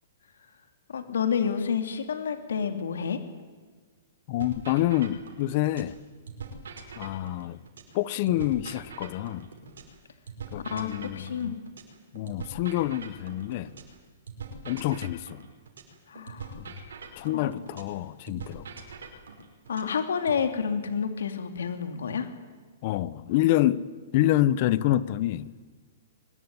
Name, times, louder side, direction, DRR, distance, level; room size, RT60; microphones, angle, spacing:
voice 1, 0.9-3.2 10.6-11.6 16.1-16.6 17.3-17.7 19.7-22.3, left 7 dB, 90° left, 2.8 m, -29 dB
voice 2, 4.3-6.0 7.0-7.6 7.9-9.5 10.5-11.5 12.1-13.7 14.6-15.4 16.6-16.7 17.2-18.7 22.8-23.8 24.1-25.6, left 14 dB, 35° left, 0.9 m, -27 dB
sound 1, 4.4-6.0 6.3-10.0 10.3-14.0 14.3-18.0 18.3-20.4, right 5 dB, 90° right, 5.4 m, -43 dB
23.5 x 21.0 x 9.7 m
hypercardioid pair, 165°, 0 cm